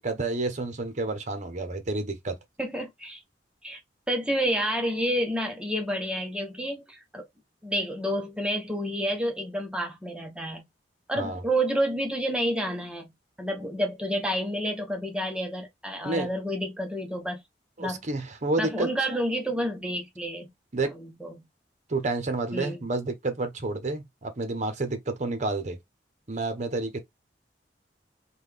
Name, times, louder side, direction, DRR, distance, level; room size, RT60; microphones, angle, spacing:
voice 1, 0.0-2.4 11.2-11.4 16.0-16.3 17.8-18.9 20.7-20.9 21.9-25.8 26.3-27.0, right 2 dB, 45° right, 0.8 m, -29 dB
voice 2, 2.6-3.2 3.6-3.8 4.1-7.3 7.6-10.6 11.1-13.1 13.4-17.4 17.8-18.0 18.6-20.5 20.9-21.5 22.5-22.8, equal, 5° right, 0.8 m, -29 dB
3.8 x 2.3 x 3.3 m
head